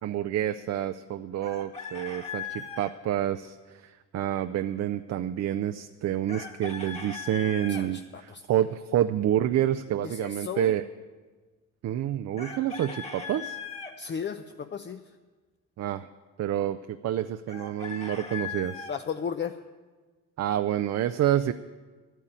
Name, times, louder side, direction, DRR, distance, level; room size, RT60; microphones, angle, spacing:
voice 1, 0.0-10.8 11.8-13.6 15.8-16.1 16.4-18.9 20.4-21.5, right 11 dB, 60° right, 9 dB, 0.5 m, -28 dB
Chicken rooster, 1.4-2.9 6.3-7.8 12.4-13.9 17.5-19.0, left 6 dB, 20° left, 1.8 m, -38 dB
voice 2, 7.7-8.4 10.0-10.7 14.0-15.0 18.9-19.6, left 7 dB, 35° left, 7 dB, 0.6 m, -35 dB
11.5 x 9.3 x 8.7 m, 1.3 s
cardioid pair, 90°, 30 cm